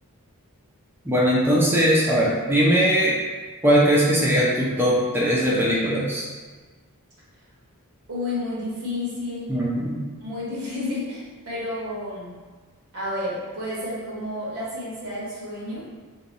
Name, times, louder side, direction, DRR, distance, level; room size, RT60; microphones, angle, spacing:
voice 1, 1.1-3.1 3.6-6.2 9.5-10.0, equal, 10° right, -6 dB, 0.5 m, -20 dB
voice 2, 8.1-9.5 10.2-12.3 12.9-15.8, left 2 dB, 80° right, -7 dB, 1.3 m, -31 dB
2.9 x 2.2 x 3.8 m, 1.4 s
head